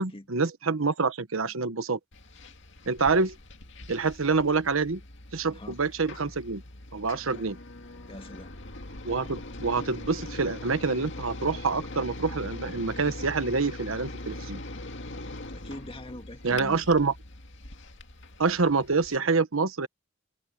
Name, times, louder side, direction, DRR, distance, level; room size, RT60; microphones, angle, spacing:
voice 1, 0.0-2.0 2.9-3.4 3.9-5.0 5.3-6.6 6.9-7.6 9.0-14.6 16.4-17.1 18.4-19.9, right 4 dB, 90° right, 1.2 m, -26 dB
sound 1, 2.1-19.2, left 2 dB, 65° left, 2.1 m, -42 dB
voice 2, 5.5-5.8 8.1-8.6 15.5-16.9, left 1 dB, 25° left, 2.0 m, -43 dB
head